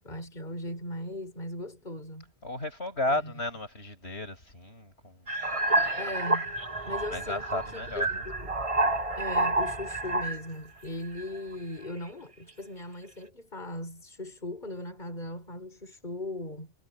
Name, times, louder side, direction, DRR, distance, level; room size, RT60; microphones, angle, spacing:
voice 1, 0.0-2.3 3.1-3.3 6.0-6.6 6.9-8.6 9.2-16.7, left 1 dB, 40° left, 5.5 m, -38 dB
voice 2, 2.4-5.2 7.1-8.1, left 2 dB, 65° left, 8.1 m, -33 dB
sound 1, 5.3-10.5 11.1-11.5, right 2 dB, 30° right, 1.5 m, -29 dB
omnidirectional pair, 1.2 m